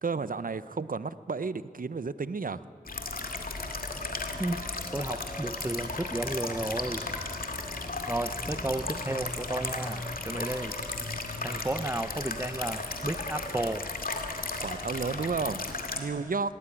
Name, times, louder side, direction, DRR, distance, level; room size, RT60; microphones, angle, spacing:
voice 1, 0.0-2.6 14.6-16.6, right 4 dB, 65° right, 15 dB, 0.7 m, -32 dB
sound 1, 2.9-16.0, left 3 dB, 70° left, 2.3 m, -35 dB
sound 2, 3.1-9.0, left 1 dB, 15° left, 4.4 m, -47 dB
voice 2, 4.9-7.0 8.1-10.8 11.4-13.9, right 1 dB, 15° right, 10 dB, 0.7 m, -33 dB
18.5 x 18.0 x 9.9 m, 2.1 s
cardioid pair, 40°, 15 cm